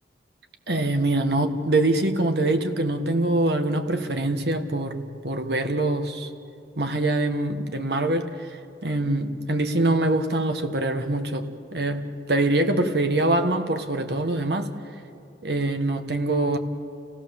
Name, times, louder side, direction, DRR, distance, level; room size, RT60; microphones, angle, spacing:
voice 1, 0.7-6.3 6.8-8.6 8.8-14.7 15.4-16.6, right 2 dB, 65° right, 7 dB, 1.5 m, -24 dB
29.0 x 16.5 x 7.1 m, 2.5 s
head